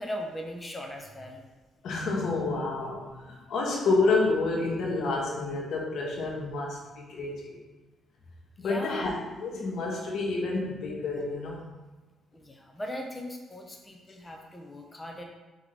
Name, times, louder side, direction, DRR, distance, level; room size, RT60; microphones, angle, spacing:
voice 1, 0.0-1.4 8.6-9.1 12.3-15.2, equal, 15° left, 1 dB, 0.9 m, -39 dB
voice 2, 1.8-7.6 8.6-9.1 9.4-11.6, left 3 dB, 70° left, -2 dB, 1.4 m, -29 dB
5.0 x 3.8 x 5.0 m, 1.2 s
cardioid pair, 90°, 0 cm